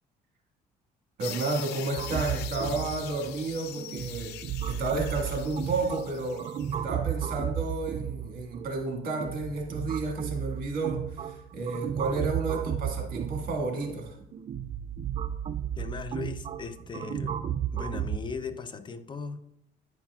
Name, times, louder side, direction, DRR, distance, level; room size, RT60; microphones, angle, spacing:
sound 1, 1.2-6.8, left 11 dB, 80° left, 0.5 m, -42 dB
voice 1, 1.2-14.2, right 3 dB, 60° right, 2 dB, 1.7 m, -32 dB
sound 2, 2.0-18.2, right 9 dB, 35° right, 0.4 m, -34 dB
voice 2, 15.8-17.4 17.7-19.5, left 5 dB, 30° left, 11 dB, 0.5 m, -38 dB
9.3 x 5.7 x 2.3 m, 0.75 s
cardioid pair, 110°, 17 cm